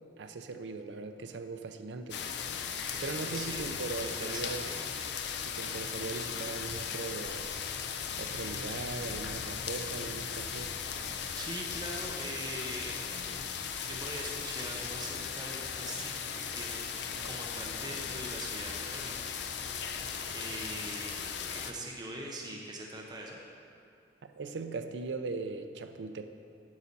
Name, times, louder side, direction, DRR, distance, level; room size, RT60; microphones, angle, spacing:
voice 1, 0.2-2.2 3.0-4.7 5.4-7.5 8.2-10.7 24.4-26.3, right 3 dB, 80° right, 8 dB, 0.5 m, -39 dB
sound 1, 2.1-21.7, left 7 dB, 70° left, 0.5 m, -37 dB
voice 2, 2.8-4.8 11.4-13.5 13.8-19.3 19.8-21.2 21.5-23.4, right 1 dB, 25° right, -2 dB, 0.8 m, -43 dB
9.6 x 6.9 x 4.1 m, 2.5 s
head